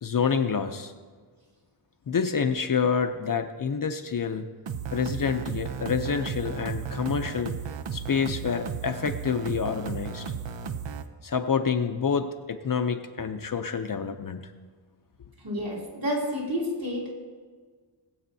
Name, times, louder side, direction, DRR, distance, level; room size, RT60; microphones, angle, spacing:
voice 1, 0.0-0.9 2.1-4.5 4.9-7.5 7.9-10.2 11.2-14.4, left 6 dB, 45° left, 6 dB, 0.6 m, -27 dB
sound 1, 4.7-11.0, right 6 dB, 70° right, 0.7 m, -34 dB
voice 2, 15.4-17.1, equal, 50° right, -4 dB, 3.0 m, -30 dB
21.0 x 7.9 x 2.7 m, 1.5 s
wide cardioid pair, 135°, 47 cm